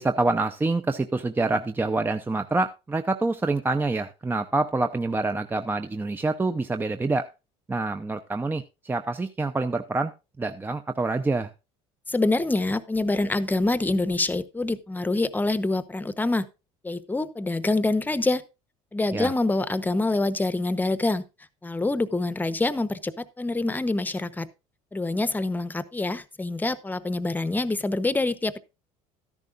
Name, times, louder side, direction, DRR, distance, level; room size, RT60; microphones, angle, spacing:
voice 1, 0.0-7.3 7.7-10.1 10.4-11.5 19.1-19.3, right 3 dB, 15° right, 9 dB, 0.6 m, -26 dB
voice 2, 12.1-16.5 16.8-18.4 18.9-21.2 21.6-24.5 24.9-28.6, left 2 dB, 10° left, 14 dB, 0.9 m, -26 dB
13.0 x 10.5 x 2.5 m, 0.27 s
supercardioid pair, 95°, 15 cm